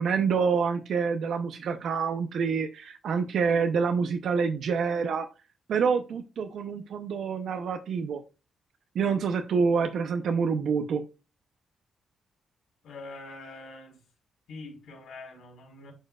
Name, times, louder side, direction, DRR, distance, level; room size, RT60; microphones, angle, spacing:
voice 1, 0.0-5.3 5.7-8.2 8.9-11.0, right 5 dB, 65° right, 0.6 m, -27 dB
voice 2, 12.8-14.0 14.5-15.9, left 3 dB, 90° left, 4.0 m, -44 dB
11.0 x 4.4 x 2.3 m
wide cardioid pair, 160°, 0 cm